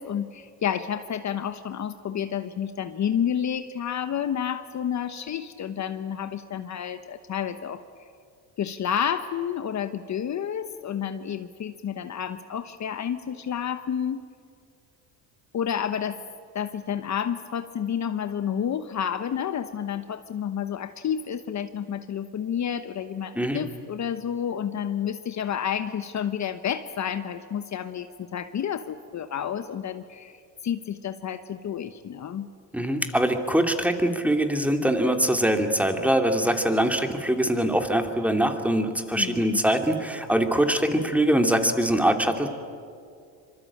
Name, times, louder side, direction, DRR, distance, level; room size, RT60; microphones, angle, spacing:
voice 1, 0.0-8.1 8.6-14.2 15.5-16.2 16.5-32.5 39.2-39.6, left 8 dB, 45° left, 10 dB, 1.1 m, -30 dB
voice 2, 32.7-42.5, right 1 dB, 5° right, 5 dB, 2.8 m, -23 dB
25.5 x 24.0 x 8.8 m, 2.3 s
supercardioid pair, 85°, 40 cm